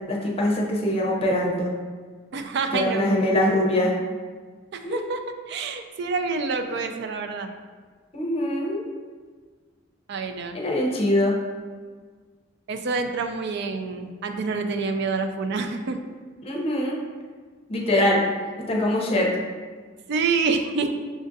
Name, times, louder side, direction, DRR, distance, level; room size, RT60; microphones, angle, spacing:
voice 1, 0.1-1.7 2.7-3.9 4.8-5.1 8.1-8.8 10.5-11.4 16.4-17.0 17.7-18.2 18.7-19.3, left 1 dB, 30° left, -2 dB, 0.6 m, -23 dB
voice 2, 2.3-3.0 4.7-7.5 10.1-10.6 12.7-16.0 17.9-18.1 20.1-21.0, right 4 dB, 60° right, 6 dB, 0.3 m, -27 dB
6.1 x 2.5 x 2.5 m, 1.5 s
head